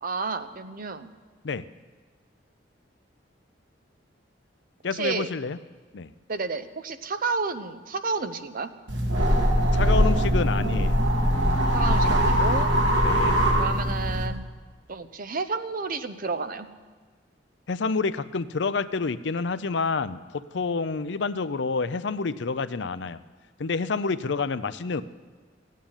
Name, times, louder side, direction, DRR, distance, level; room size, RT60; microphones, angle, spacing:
voice 1, 0.0-1.1 4.9-5.3 6.3-8.7 11.7-12.7 13.6-14.4 14.9-16.7, right 4 dB, 50° right, 10 dB, 0.8 m, -31 dB
voice 2, 4.8-5.6 5.9-6.1 9.7-11.0 13.0-13.4 17.7-23.2 23.6-25.0, left 4 dB, 65° left, 13 dB, 0.6 m, -28 dB
sound 1, 8.9-14.3, equal, 75° right, 2.2 m, -22 dB
16.0 x 9.3 x 8.9 m, 1.4 s
head